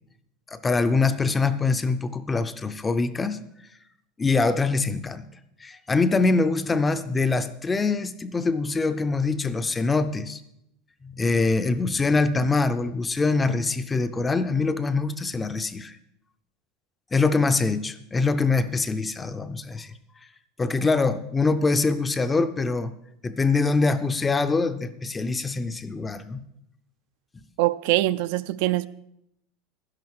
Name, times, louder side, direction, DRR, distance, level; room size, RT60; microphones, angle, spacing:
voice 1, 0.5-3.4 4.2-5.3 5.6-10.4 11.0-15.9 17.1-19.9 20.6-22.9 23.2-26.4, left 3 dB, 10° left, 0.4 m, -24 dB
voice 2, 27.6-28.9, right 16 dB, 60° right, 0.3 m, -23 dB
11.5 x 10.5 x 4.7 m
supercardioid pair, 170°, 0 cm